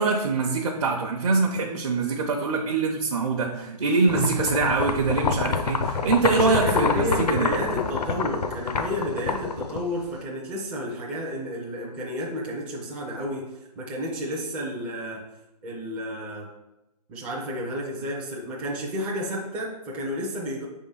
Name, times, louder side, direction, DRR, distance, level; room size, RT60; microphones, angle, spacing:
voice 1, 0.0-7.5, right 4 dB, 50° right, 0 dB, 0.7 m, -24 dB
sound 1, 4.1-10.2, left 5 dB, 75° left, 0.7 m, -27 dB
voice 2, 6.3-13.5 13.8-15.2 15.6-16.5 17.1-20.7, equal, 5° right, -4 dB, 0.4 m, -31 dB
4.9 x 3.7 x 5.5 m, 0.97 s
hypercardioid pair, 160°, 21 cm